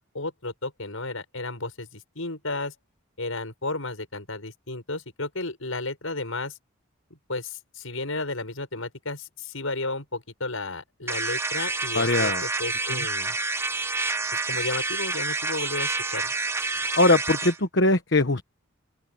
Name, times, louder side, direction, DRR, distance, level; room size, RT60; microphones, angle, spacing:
voice 1, 0.0-2.7 3.2-6.5 7.1-13.4 14.3-16.3, left 2 dB, 70° left, 6.5 m, -33 dB
sound 1, 11.1-17.6, right 3 dB, 10° right, 0.8 m, -28 dB
voice 2, 11.9-12.4 16.7-18.4, left 2 dB, 55° left, 1.2 m, -21 dB
open air
head